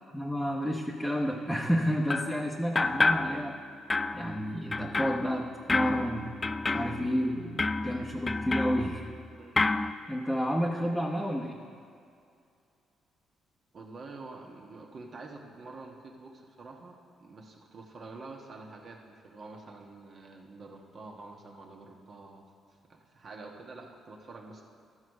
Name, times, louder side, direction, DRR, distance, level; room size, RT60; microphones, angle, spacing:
voice 1, 0.0-3.6 4.1-6.3 6.7-9.0 9.5-9.7 10.1-11.6, equal, ahead, -4 dB, 0.9 m, -30 dB
sound 1, 2.1-2.4 2.7-3.6 3.9-9.2 9.6-9.9, left 3 dB, 25° left, 0.3 m, -30 dB
voice 2, 13.7-16.9 17.2-22.5 22.9-24.6, right 3 dB, 50° right, 1 dB, 1.3 m, -47 dB
13.0 x 4.7 x 6.4 m, 2.4 s
cardioid pair, 90°, 0 cm